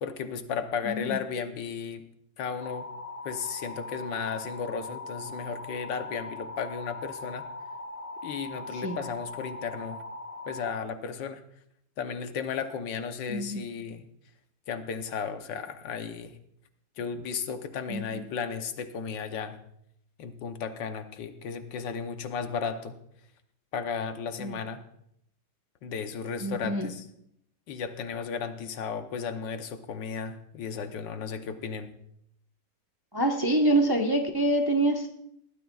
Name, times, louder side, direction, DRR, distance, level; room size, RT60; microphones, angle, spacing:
voice 1, 0.0-2.0 2.4-2.9 3.2-7.4 8.2-10.0 10.5-11.4 12.0-14.1 14.7-16.3 17.0-19.6 20.2-22.9 23.7-24.8 25.8-27.0 27.7-31.9, left 6 dB, 80° left, 8 dB, 1.6 m, -34 dB
voice 2, 0.8-1.2 8.8-9.0 13.3-13.7 17.9-18.2 24.4-24.6 26.4-26.9 33.1-35.1, right 1 dB, 20° right, 2 dB, 0.7 m, -26 dB
sound 1, 2.6-10.7, left 2 dB, 30° left, 0.7 m, -40 dB
20.0 x 13.5 x 2.4 m, 0.72 s
omnidirectional pair, 2.0 m